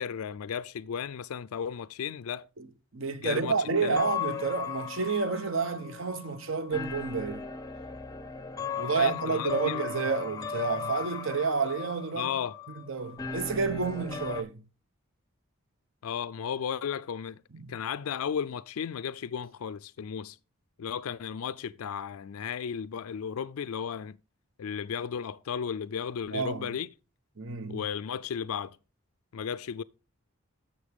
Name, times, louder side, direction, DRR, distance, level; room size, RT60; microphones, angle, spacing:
voice 1, 0.0-2.5 3.2-3.6 3.8-4.0 9.0-9.8 12.1-12.6 16.0-17.4 17.7-20.4 20.8-24.2 24.6-26.9 27.7-28.8 29.3-29.8, left 7 dB, 85° left, 0.4 m, -34 dB
voice 2, 2.9-7.4 8.8-12.3 12.9-14.6 17.5-17.7 26.3-26.7 27.4-27.8, right 4 dB, 65° right, 0.8 m, -30 dB
sound 1, 3.6-14.4, left 6 dB, 15° left, 0.5 m, -37 dB
11.5 x 7.0 x 3.5 m
head